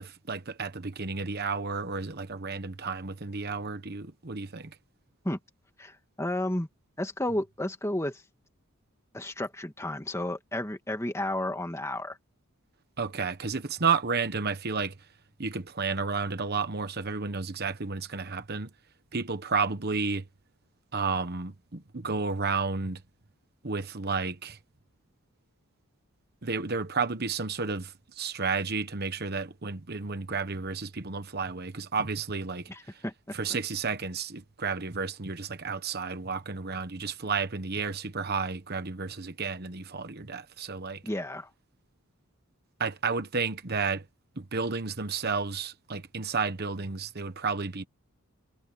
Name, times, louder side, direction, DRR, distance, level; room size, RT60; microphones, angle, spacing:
voice 1, 0.0-4.7 13.0-14.9 15.4-18.7 19.1-20.2 20.9-23.0 23.6-24.6 26.4-33.0 33.3-41.0 42.8-44.0 44.4-47.9, right 4 dB, 45° right, 1.1 m, -32 dB
voice 2, 5.8-6.7 7.0-8.2 9.1-12.2 32.7-33.4 41.0-41.5, left 1 dB, 10° left, 1.9 m, -32 dB
head